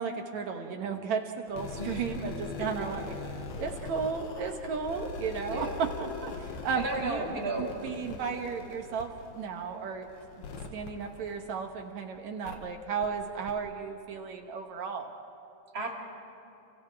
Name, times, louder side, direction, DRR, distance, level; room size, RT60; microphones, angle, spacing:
voice 1, 0.0-3.0 3.6-7.2 7.6-10.1 10.7-15.1, right 5 dB, 65° right, 4 dB, 2.1 m, -34 dB
sound 1, 1.5-11.9 12.4-12.6 13.0-13.1 13.5-13.6, left 4 dB, 85° left, 3.4 m, -41 dB
voice 2, 5.5-5.8 6.8-7.7 15.7-15.9, right 2 dB, 35° right, -1 dB, 2.6 m, -34 dB
30.0 x 30.0 x 3.5 m, 2.9 s
omnidirectional pair, 4.1 m